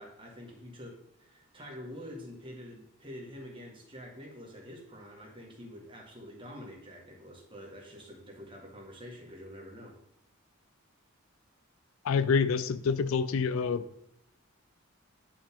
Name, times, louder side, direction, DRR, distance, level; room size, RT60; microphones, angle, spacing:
voice 1, 0.0-10.0, equal, 25° right, 1.6 m, -47 dB
voice 2, 12.0-13.9, left 5 dB, 70° left, 0.4 m, -27 dB
9.8 x 4.7 x 3.6 m
head